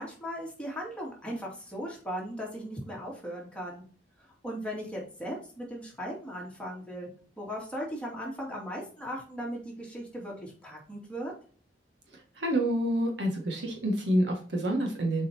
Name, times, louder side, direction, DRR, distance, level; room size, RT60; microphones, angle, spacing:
voice 1, 0.0-3.8 4.2-7.1 7.4-11.3, equal, 5° left, -3 dB, 2.5 m, -38 dB
voice 2, 12.4-15.3, right 1 dB, 70° right, 1 dB, 2.0 m, -28 dB
7.3 x 4.7 x 2.9 m, 0.42 s
head